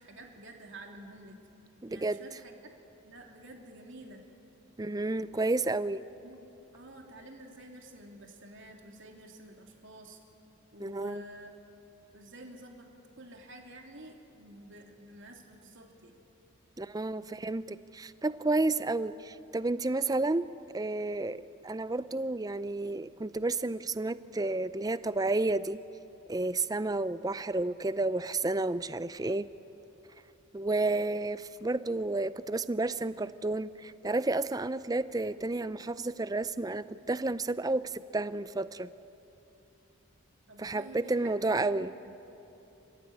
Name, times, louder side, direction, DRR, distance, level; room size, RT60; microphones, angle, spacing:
voice 1, 0.0-1.4 1.9-2.7 3.0-4.2 6.2-6.4 6.7-10.2 10.7-11.5 12.1-12.9 13.2-16.2 40.5-42.1, right 1 dB, 55° right, 1 dB, 3.2 m, -50 dB
voice 2, 1.8-2.2 4.8-6.0 10.8-11.2 16.8-20.5 20.7-25.8 26.3-29.5 30.5-38.9 40.6-41.9, right 2 dB, 15° right, 15 dB, 0.5 m, -31 dB
29.5 x 16.0 x 9.6 m, 3.0 s
head